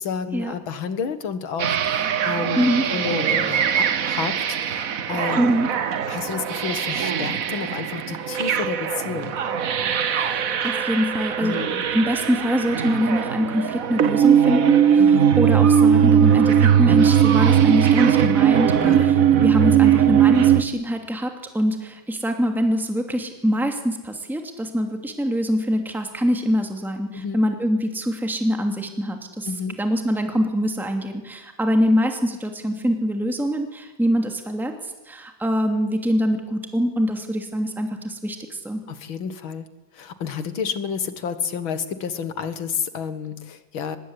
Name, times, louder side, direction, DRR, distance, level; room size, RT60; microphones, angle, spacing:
voice 1, 0.0-2.6 2.9-4.8 5.1-5.7 6.1-9.4 11.4-11.8 15.0-15.3 18.8-19.2 27.1-27.4 29.5-29.8 38.9-39.7 39.9-44.0, left 6 dB, 85° left, 11 dB, 2.4 m, -30 dB
sound 1, 1.6-20.6, right 8 dB, 50° right, 1.3 m, -19 dB
voice 2, 5.4-5.7 10.0-11.6 11.9-29.5 29.8-38.8, equal, ahead, 4 dB, 2.6 m, -24 dB
24.5 x 20.5 x 9.8 m, 1.0 s
omnidirectional pair, 2.1 m